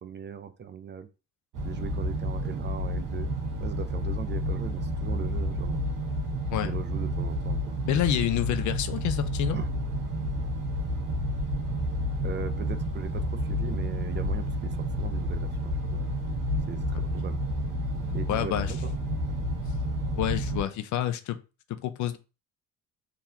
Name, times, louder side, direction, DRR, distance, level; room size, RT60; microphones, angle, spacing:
voice 1, 0.0-1.1 1.6-3.3 3.6-5.8 6.6-7.8 9.5-9.7 12.2-16.1 16.7-17.4 18.1-18.9, right 7 dB, 35° right, 10 dB, 0.5 m, -39 dB
sound 1, 1.5-20.6, equal, 65° right, 1.1 m, -30 dB
voice 2, 7.8-9.6 16.9-17.0 18.3-18.7 20.2-21.4 21.8-22.2, left 11 dB, 60° left, 10 dB, 0.6 m, -28 dB
3.7 x 2.9 x 2.8 m, 0.30 s
hypercardioid pair, 60°, 34 cm